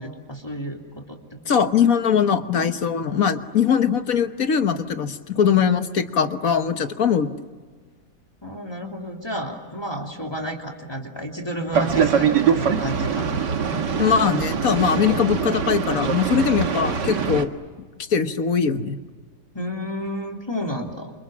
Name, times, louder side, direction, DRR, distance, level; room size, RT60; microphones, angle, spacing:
voice 1, 0.0-1.7 8.4-13.4 19.5-21.1, equal, 15° left, 1 dB, 2.8 m, -31 dB
voice 2, 1.5-7.3 14.0-17.5 18.1-19.0, left 7 dB, 55° left, 9 dB, 1.6 m, -21 dB
Boat Water vehicle, 11.7-17.4, right 7 dB, 85° right, 2.2 m, -23 dB
28.5 x 28.0 x 7.5 m, 1.5 s
omnidirectional pair, 1.8 m